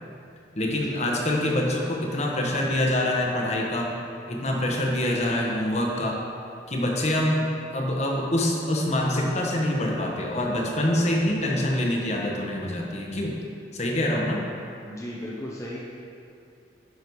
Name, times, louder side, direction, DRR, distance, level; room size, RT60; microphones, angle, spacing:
voice 1, 0.6-3.9 4.3-6.2 6.7-7.4 7.7-13.3 13.7-14.4, left 1 dB, 35° left, -1 dB, 1.2 m, -25 dB
voice 2, 14.8-15.8, left 1 dB, 15° left, -6 dB, 0.8 m, -35 dB
10.5 x 6.4 x 4.7 m, 2.5 s
head